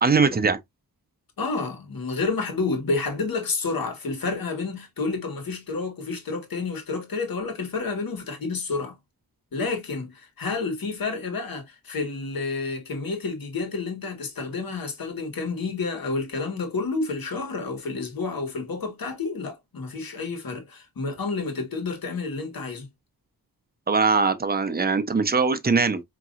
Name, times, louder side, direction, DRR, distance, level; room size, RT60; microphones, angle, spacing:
voice 1, 0.0-0.6 23.9-26.0, right 4 dB, 25° right, 0.6 m, -21 dB
voice 2, 1.4-9.0 9.5-22.9, left 3 dB, 65° left, 1.4 m, -30 dB
5.2 x 2.9 x 2.4 m
wide cardioid pair, 155°, 37 cm